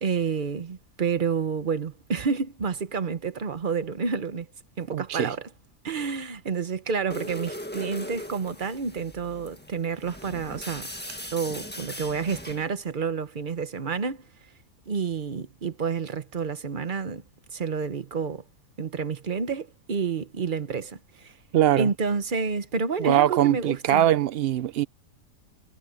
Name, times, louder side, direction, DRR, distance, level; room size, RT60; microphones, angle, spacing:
voice 1, 0.0-4.5 4.8-5.5 5.8-10.9 11.3-14.3 14.9-17.2 17.5-18.4 18.8-21.3 21.8-24.1, right 5 dB, 35° right, 1.0 m, -29 dB
voice 2, 4.9-5.3 21.5-21.9 23.0-24.8, right 12 dB, 85° right, 0.5 m, -22 dB
sound 1, 7.1-12.7, left 1 dB, 5° left, 1.5 m, -39 dB
omnidirectional pair, 1.7 m